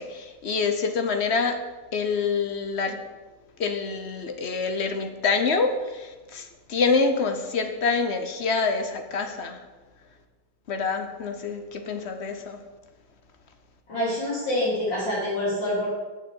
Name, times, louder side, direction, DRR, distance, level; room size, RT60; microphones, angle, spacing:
voice 1, 0.0-1.6 1.9-3.0 3.6-9.6 10.7-12.6, left 4 dB, 45° left, 6 dB, 0.9 m, -26 dB
voice 2, 13.9-15.9, left 1 dB, 80° left, -8 dB, 4.1 m, -26 dB
7.7 x 6.6 x 7.8 m, 1.2 s
omnidirectional pair, 2.0 m